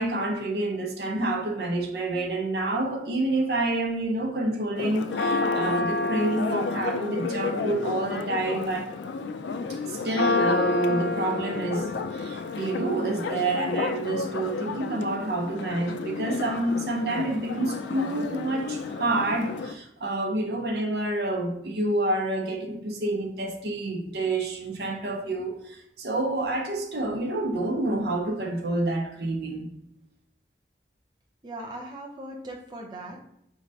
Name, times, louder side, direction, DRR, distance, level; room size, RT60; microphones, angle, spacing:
voice 1, 0.0-8.9 9.7-29.7, right 2 dB, 60° right, 3 dB, 0.7 m, -28 dB
Church bell, 4.8-19.7, left 4 dB, 80° left, 0.4 m, -30 dB
voice 2, 31.4-33.2, right 1 dB, 25° right, -1 dB, 0.5 m, -39 dB
4.9 x 3.2 x 2.6 m, 0.78 s
head